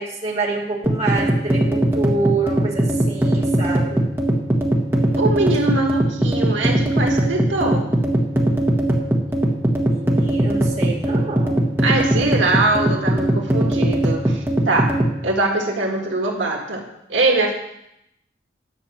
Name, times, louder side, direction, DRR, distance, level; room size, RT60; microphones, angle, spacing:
voice 1, 0.0-4.0 9.8-11.6, right 3 dB, 35° right, -3 dB, 2.2 m, -27 dB
sound 1, 0.8-15.1, right 1 dB, 10° right, 1.4 m, -19 dB
voice 2, 5.2-7.9 11.8-14.9 15.2-16.8 17.1-17.5, right 2 dB, 85° right, 0 dB, 1.9 m, -22 dB
10.5 x 6.1 x 7.7 m, 0.81 s
head